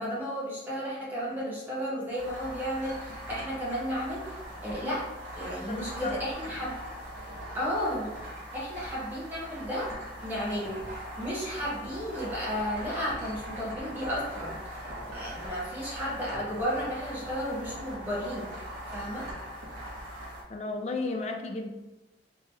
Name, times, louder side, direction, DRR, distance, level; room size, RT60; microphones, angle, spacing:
voice 1, 0.0-4.3 4.6-5.1 5.3-6.8 7.5-8.1 8.5-9.9 10.2-10.8 11.2-14.6 15.1-19.3, equal, 10° right, -7 dB, 1.0 m, -33 dB
sound 1, 2.2-20.4, equal, 60° right, 1.0 m, -41 dB
voice 2, 5.7-6.2 20.5-21.7, left 3 dB, 35° left, 4 dB, 0.4 m, -33 dB
3.2 x 2.8 x 3.3 m, 1.1 s
head